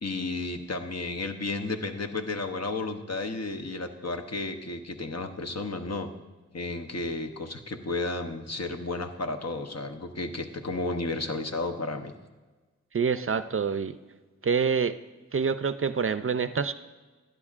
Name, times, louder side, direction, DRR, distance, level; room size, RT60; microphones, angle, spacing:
voice 1, 0.0-6.1 6.5-12.1, left 3 dB, 60° left, 5 dB, 0.8 m, -32 dB
voice 2, 12.9-14.0 14.4-15.0 15.3-16.7, right 6 dB, 45° right, 12 dB, 0.4 m, -26 dB
12.5 x 10.5 x 2.4 m, 1.3 s
wide cardioid pair, 55°, 30 cm